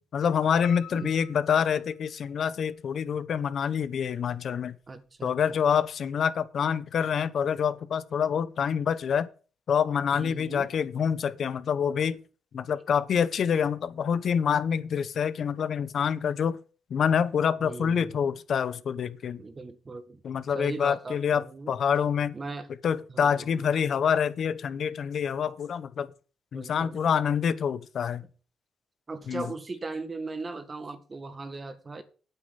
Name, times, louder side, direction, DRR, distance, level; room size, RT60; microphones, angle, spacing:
voice 1, 0.1-4.8 5.2-9.3 9.7-12.2 12.5-16.6 16.9-19.4 20.2-22.3 22.8-26.1 26.5-28.2 29.3-29.4, left 7 dB, 60° left, 0.9 m, -26 dB
Piano, 0.6-2.5 3.0-3.8 4.2-4.3 4.7-4.8 5.1-5.2, left 12 dB, 80° left, 0.9 m, -48 dB
voice 2, 4.9-5.6 10.1-10.7 17.6-18.2 19.4-20.2 20.5-21.8 22.3-22.7 23.1-23.7 26.5-27.0 29.1-32.0, right 3 dB, 30° right, 1.7 m, -38 dB
8.8 x 8.2 x 5.6 m
cardioid pair, 90°, 0 cm